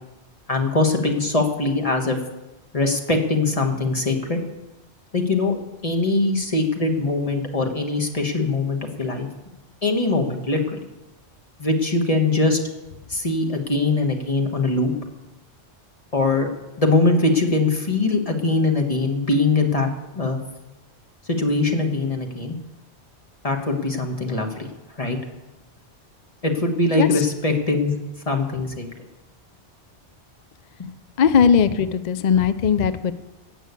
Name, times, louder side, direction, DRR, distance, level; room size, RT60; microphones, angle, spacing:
voice 1, 0.5-2.2 2.7-4.4 5.1-9.3 9.8-10.8 11.6-12.6 13.1-14.9 16.1-16.5 16.8-19.9 20.1-20.4 21.4-22.6 23.4-24.7 25.0-25.2 26.4-27.9 28.3-28.9 30.8-30.9, left 3 dB, 30° left, 3 dB, 1.5 m, -22 dB
voice 2, 31.2-33.1, left 7 dB, 50° left, 13 dB, 0.5 m, -18 dB
16.5 x 6.3 x 8.2 m, 1.1 s
omnidirectional pair, 1.2 m